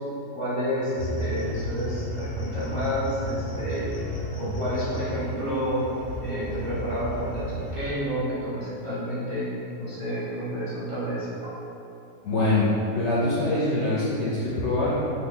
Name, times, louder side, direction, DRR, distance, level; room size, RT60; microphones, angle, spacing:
voice 1, 0.3-3.9 4.4-5.8 6.2-9.5 9.8-11.5, equal, 25° right, -12 dB, 0.8 m, -30 dB
sound 1, 1.0-7.9, equal, 30° left, 0.6 m, -33 dB
voice 2, 12.2-15.1, left 2 dB, 65° left, -8 dB, 0.7 m, -24 dB
3.1 x 2.4 x 3.7 m, 2.8 s
omnidirectional pair, 1.7 m